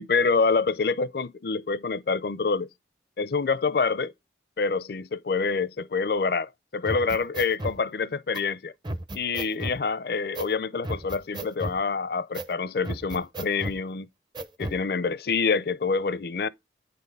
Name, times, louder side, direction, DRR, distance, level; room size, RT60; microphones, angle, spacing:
voice 1, 0.0-2.7 3.2-4.1 4.6-8.7 9.1-14.1 14.6-16.5, left 4 dB, 55° left, 0.5 m, -26 dB
sound 1, 6.8-7.8 8.3-8.4 8.8-9.8 10.3-10.5 10.8-11.8 12.3-12.5 12.8-13.8 14.3-14.8, right 1 dB, 25° right, 0.5 m, -34 dB
9.3 x 4.2 x 5.3 m
head